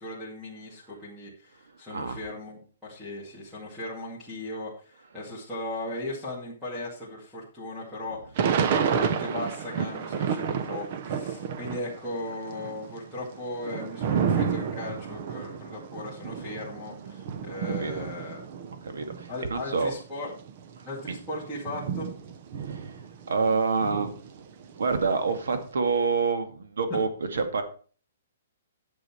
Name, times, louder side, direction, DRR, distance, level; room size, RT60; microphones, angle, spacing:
voice 1, 0.0-18.4 19.3-20.3 20.8-22.1 26.9-27.0, left 1 dB, ahead, -9 dB, 2.2 m, -37 dB
Thunder / Rain, 8.4-12.0 12.3-19.4 20.0-20.1 20.2-23.4 23.8-25.5, right 7 dB, 30° right, 0.7 m, -30 dB
voice 2, 17.6-18.1 18.8-19.9 20.8-21.1 22.6-23.0 23.3-24.5 24.8-27.6, right 4 dB, 80° right, 8 dB, 2.1 m, -28 dB
10.5 x 7.8 x 4.4 m, 0.40 s
hypercardioid pair, 180°, 0 cm